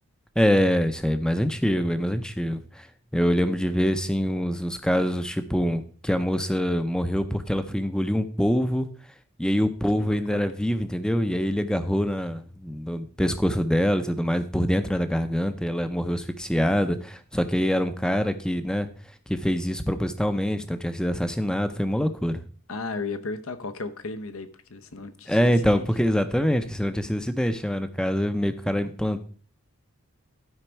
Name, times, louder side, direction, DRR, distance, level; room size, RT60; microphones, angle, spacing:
voice 1, 0.4-2.9 3.1-8.9 9.4-18.9 19.3-22.4 25.3-29.2, equal, 5° left, 0.5 m, -25 dB
voice 2, 10.0-10.4 22.7-25.9, left 3 dB, 70° left, 0.9 m, -35 dB
12.0 x 5.2 x 4.5 m
head